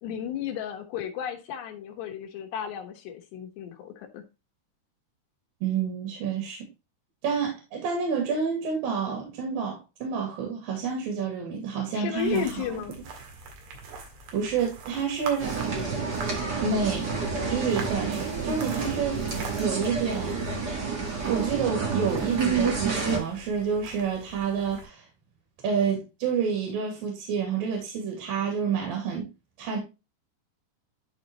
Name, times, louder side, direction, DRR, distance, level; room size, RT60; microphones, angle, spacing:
voice 1, 0.0-4.2 11.9-13.0, left 9 dB, 80° left, 3.4 m, -33 dB
voice 2, 5.6-6.7 7.2-12.8 14.3-15.7 16.6-19.2 19.6-20.4 21.3-25.1 25.6-29.3 29.6-29.8, right 6 dB, 60° right, 3.9 m, -29 dB
sound 1, 12.2-24.9, right 4 dB, 80° right, 4.0 m, -44 dB
sound 2, 15.4-23.2, right 4 dB, 45° right, 1.4 m, -29 dB
12.0 x 4.3 x 3.0 m
omnidirectional pair, 4.9 m